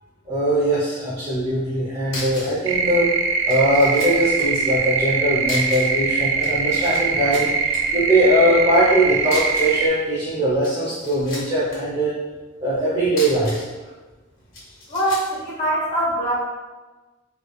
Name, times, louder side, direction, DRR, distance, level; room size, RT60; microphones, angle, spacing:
voice 1, 0.2-3.1 3.5-12.1 12.6-13.6, right 1 dB, 30° right, -10 dB, 0.8 m, -21 dB
sound 1, 1.7-1.8 2.1-2.6 2.9-3.0 3.5-4.5 5.4-6.0 6.3-7.0 7.3-7.8 9.2-9.8 10.5-11.8 13.0-13.7 14.5-15.3, left 2 dB, 85° left, 1.4 m, -35 dB
sound 2, 2.7-9.9, right 5 dB, 70° right, 0.4 m, -22 dB
voice 2, 14.9-16.3, right 1 dB, 40° left, -8 dB, 1.5 m, -23 dB
3.3 x 3.1 x 2.3 m, 1.2 s
head